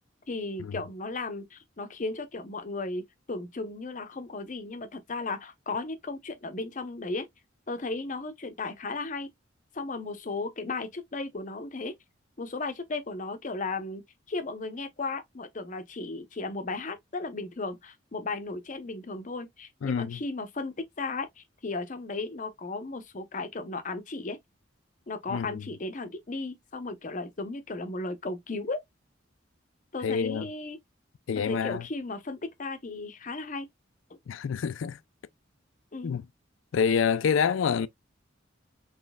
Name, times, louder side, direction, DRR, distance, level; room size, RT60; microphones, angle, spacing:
voice 1, 0.3-7.3 7.7-9.3 9.7-11.9 12.4-14.0 14.3-24.4 25.1-28.8 29.9-30.8 31.4-33.7 34.1-34.2 35.9-36.1, left 3 dB, 40° left, 0.7 m, -35 dB
voice 2, 19.8-20.2 25.3-25.6 30.0-30.5 31.3-31.8 34.3-35.0 36.0-36.3 36.7-37.9, left 6 dB, 90° left, 0.4 m, -27 dB
3.9 x 3.1 x 2.2 m
head